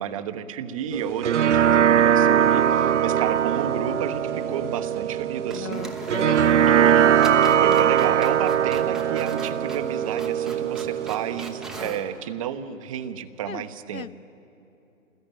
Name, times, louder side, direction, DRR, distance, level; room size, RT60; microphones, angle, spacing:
voice 1, 0.0-5.9 6.7-7.3 7.6-14.1, right 9 dB, 25° right, 11 dB, 1.0 m, -31 dB
sound 1, 0.9-11.9, right 9 dB, 60° right, 0.5 m, -21 dB
sound 2, 2.4-3.2 3.5-3.6 5.1-5.2 5.5-12.1, right 2 dB, ahead, 1.0 m, -41 dB
voice 2, 5.5-6.8 13.5-13.7 13.9-14.1, left 7 dB, 80° left, 22 dB, 0.7 m, -36 dB
28.0 x 20.0 x 9.0 m, 2.9 s
figure-of-eight pair, 135°, 40 cm